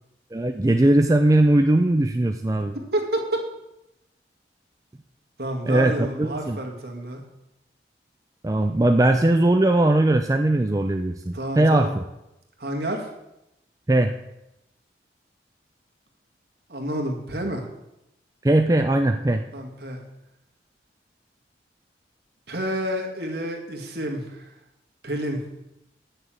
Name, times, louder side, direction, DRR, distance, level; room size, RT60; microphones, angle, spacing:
voice 1, 0.3-2.8 5.7-6.6 8.4-12.0 13.9-14.1 18.4-19.4, right 1 dB, 20° right, 5 dB, 0.4 m, -20 dB
voice 2, 2.7-3.5 5.4-7.2 11.3-11.9 12.6-13.1 16.7-17.7 19.5-20.0 22.5-24.5 25.0-25.5, right 1 dB, 60° right, 1 dB, 2.0 m, -29 dB
9.0 x 6.6 x 7.6 m, 0.88 s
head